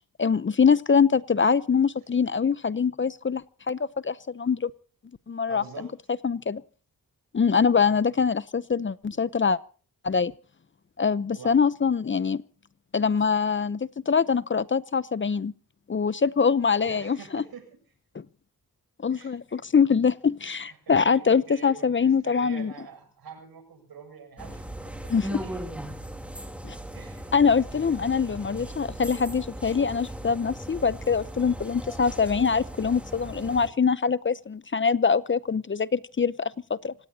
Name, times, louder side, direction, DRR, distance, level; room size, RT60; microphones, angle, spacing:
voice 1, 0.2-4.7 5.3-5.6 6.2-6.6 7.3-9.6 10.0-10.3 11.0-12.4 12.9-15.5 15.9-17.4 18.1-18.2 19.0-22.7 25.1-25.4 26.6-26.8 27.3-36.9, left 6 dB, 35° left, 17 dB, 0.7 m, -24 dB
voice 2, 5.5-5.9 11.3-11.7 16.7-17.8 19.1-19.4 20.6-25.5 26.9-27.3 28.0-28.2, right 6 dB, 80° right, 6 dB, 7.2 m, -45 dB
sound 1, 24.4-33.7, right 1 dB, 5° right, 3.0 m, -38 dB
27.5 x 18.0 x 2.8 m, 0.41 s
cardioid pair, 85°, 36 cm